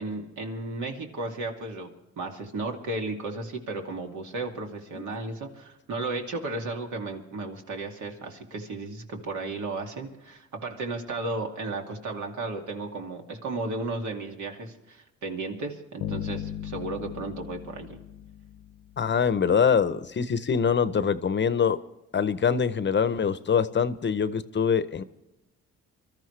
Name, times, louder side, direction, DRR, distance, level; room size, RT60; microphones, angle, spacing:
voice 1, 0.0-1.9 2.2-18.0, right 2 dB, 75° right, 2 dB, 2.5 m, -34 dB
Bass guitar, 16.0-19.1, left 9 dB, 90° left, 0.9 m, -37 dB
voice 2, 19.0-21.8 22.1-25.0, left 6 dB, 40° left, 14 dB, 0.8 m, -24 dB
24.0 x 13.5 x 3.3 m, 0.98 s
cardioid pair, 90°, 30 cm